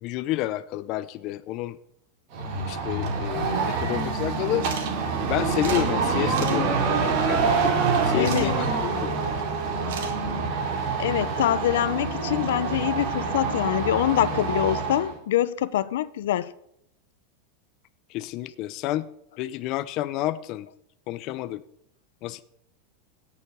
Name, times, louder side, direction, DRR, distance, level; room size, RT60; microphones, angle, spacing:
voice 1, 0.0-1.8 2.7-4.6 5.3-7.6 8.0-9.2 18.1-19.1 19.4-20.7 21.1-21.6 22.2-22.4, left 14 dB, 35° left, 0.6 m, -30 dB
sound 1, 2.3-15.1, right 4 dB, 45° right, 2.5 m, -26 dB
sound 2, 4.6-4.9 5.2-5.3 5.6-5.8 6.3-6.6 8.2-8.5 9.9-10.1, right 6 dB, 65° right, 3.2 m, -36 dB
voice 2, 8.1-8.5 11.0-16.5, left 12 dB, 75° left, 0.7 m, -25 dB
17.0 x 7.1 x 6.9 m
supercardioid pair, 165°, 0 cm